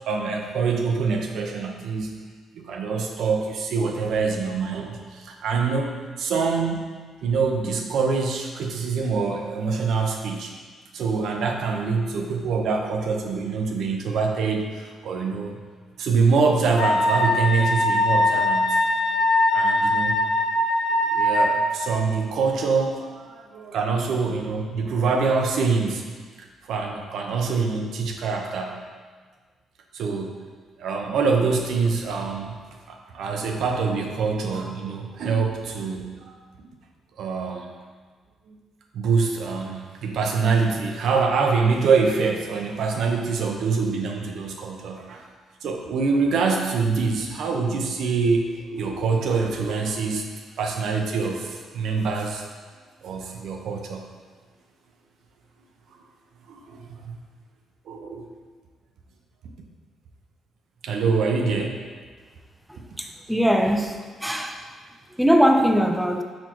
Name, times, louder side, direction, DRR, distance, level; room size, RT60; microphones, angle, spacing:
voice 1, 0.1-2.1 2.5-6.9 7.2-10.5 10.9-15.6 16.0-18.8 19.5-20.2 21.1-26.0 26.4-28.8 29.9-30.4 30.8-32.6 32.9-36.7 37.2-37.7 38.5-38.6 38.9-45.3 45.6-50.2 50.6-52.4 53.0-54.0 56.5-57.1 57.9-58.3 60.8-61.8, right 4 dB, 75° right, 2 dB, 0.6 m, -25 dB
Wind instrument woodwind instrument, 16.8-21.7, left 1 dB, 75° left, 0.7 m, -21 dB
voice 2, 63.0-64.6 65.2-66.2, equal, 5° right, 4 dB, 0.3 m, -21 dB
4.3 x 4.2 x 2.9 m, 1.5 s
cardioid pair, 90°, 0 cm